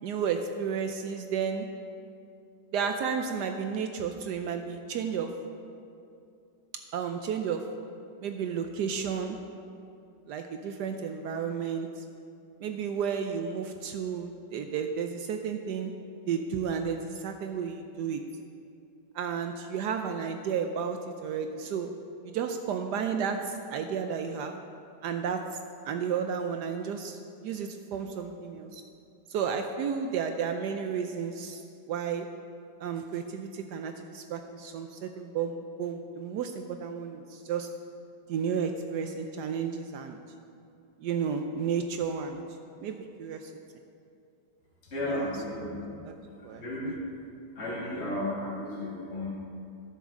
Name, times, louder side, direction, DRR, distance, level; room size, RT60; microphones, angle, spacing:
voice 1, 0.0-1.7 2.7-5.3 6.9-7.6 8.2-9.4 10.3-12.0 12.6-15.9 16.3-18.2 19.1-21.9 22.2-24.5 25.0-25.4 25.8-28.8 29.3-31.6 31.9-32.3 32.8-37.7 38.3-40.2 41.0-42.4 42.8-43.5 45.1-45.6 46.0-46.1 46.4-46.9, right 7 dB, 75° right, 6 dB, 1.1 m, -32 dB
voice 2, 44.8-45.7 46.6-47.1 47.5-49.3, left 1 dB, 35° left, -8 dB, 2.6 m, -33 dB
17.5 x 7.1 x 3.7 m, 2.5 s
omnidirectional pair, 1.9 m